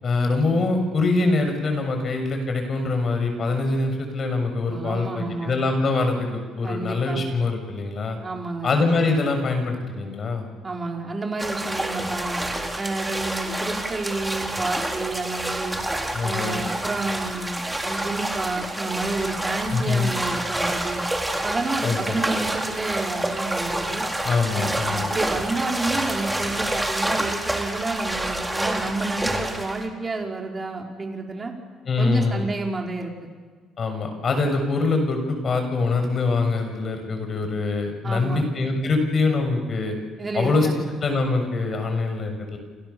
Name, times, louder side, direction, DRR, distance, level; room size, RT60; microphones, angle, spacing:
voice 1, 0.0-8.2 8.6-10.5 16.1-16.6 19.7-20.1 21.8-22.2 24.2-25.1 31.9-32.5 33.8-40.0 40.3-40.7 41.0-42.6, left 3 dB, 40° left, 5 dB, 7.0 m, -24 dB
voice 2, 4.7-5.5 6.6-7.2 8.2-8.7 10.6-12.4 12.8-15.8 16.2-21.0 21.4-24.1 24.5-31.5 32.0-33.1 38.0-38.4 40.2-40.8, right 3 dB, 25° right, 1 dB, 5.0 m, -30 dB
sound 1, 11.4-29.9, right 1 dB, 5° right, 3.6 m, -28 dB
29.0 x 28.5 x 7.2 m, 1.5 s
cardioid pair, 115°, 0 cm